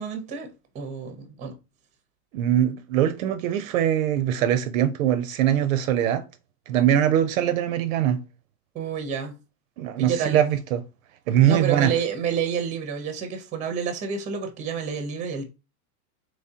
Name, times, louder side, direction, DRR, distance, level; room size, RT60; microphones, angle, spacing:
voice 1, 0.0-1.6 8.7-9.4 10.0-10.4 11.4-15.4, right 7 dB, 15° right, 0.6 m, -29 dB
voice 2, 2.3-6.2 6.7-8.2 9.8-10.8 11.3-11.9, right 10 dB, 60° right, 0.5 m, -22 dB
3.6 x 3.1 x 2.7 m
supercardioid pair, 135°, 48 cm